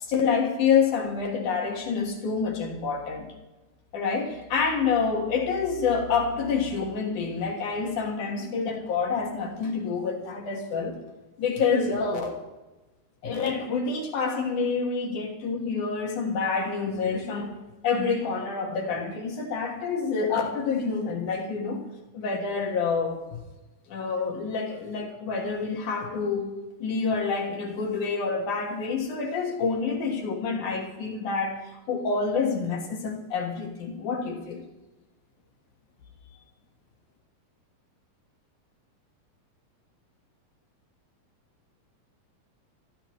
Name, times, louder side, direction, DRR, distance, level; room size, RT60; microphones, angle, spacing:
voice 1, 0.1-3.3 3.9-11.0 11.4-12.4 13.2-17.5 17.8-21.9 22.1-23.4 23.9-26.5 26.8-31.6 31.9-34.6, left 5 dB, 65° left, 2 dB, 3.2 m, -27 dB
24.0 x 13.5 x 3.2 m, 1.1 s
omnidirectional pair, 4.0 m